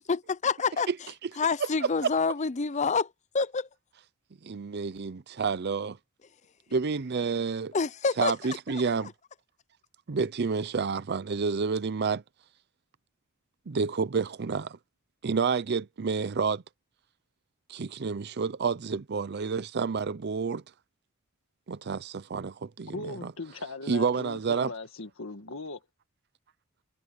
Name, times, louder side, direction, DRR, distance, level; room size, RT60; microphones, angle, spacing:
voice 1, 0.1-0.9 1.4-3.7 7.7-8.3 8.7-9.1, left 4 dB, 35° left, 0.6 m, -28 dB
voice 2, 4.4-6.0 6.7-7.8 8.2-9.1 10.1-12.2 13.7-14.8 15.2-16.6 17.7-20.6 21.7-23.3 23.9-24.7, right 5 dB, 50° right, 0.5 m, -29 dB
voice 3, 22.9-25.8, left 2 dB, 75° left, 1.7 m, -39 dB
head